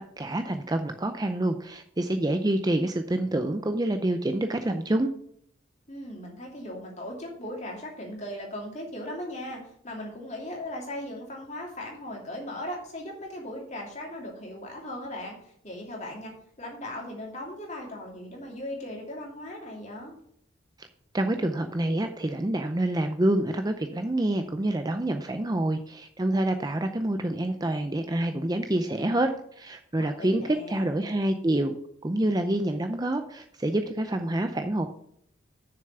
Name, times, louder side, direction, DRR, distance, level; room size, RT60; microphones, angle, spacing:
voice 1, 0.0-5.1 20.8-20.9 21.1-29.3 29.6-31.7 32.0-34.9, right 1 dB, 20° right, 7 dB, 0.5 m, -27 dB
voice 2, 5.9-16.3 16.6-20.1 30.0-30.9, left 1 dB, 35° left, -1 dB, 2.7 m, -38 dB
6.8 x 6.7 x 6.7 m, 0.68 s
head